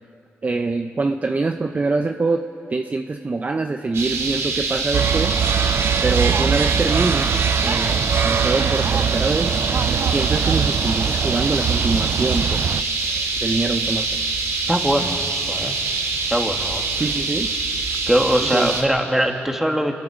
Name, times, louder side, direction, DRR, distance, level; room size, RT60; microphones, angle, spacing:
voice 1, 0.4-5.4 6.0-9.6 10.0-12.7 13.4-14.2 17.0-17.5 18.4-18.8, right 3 dB, 35° right, 6 dB, 0.8 m, -24 dB
sound 1, 3.9-18.8, right 4 dB, 75° right, 2.8 m, -25 dB
sound 2, 4.9-12.8, right 7 dB, 60° right, 0.4 m, -22 dB
voice 2, 14.7-15.8 16.3-16.8 18.1-20.0, equal, 5° right, 3 dB, 2.4 m, -21 dB
27.0 x 20.5 x 5.1 m, 2.4 s
cardioid pair, 65°, 5 cm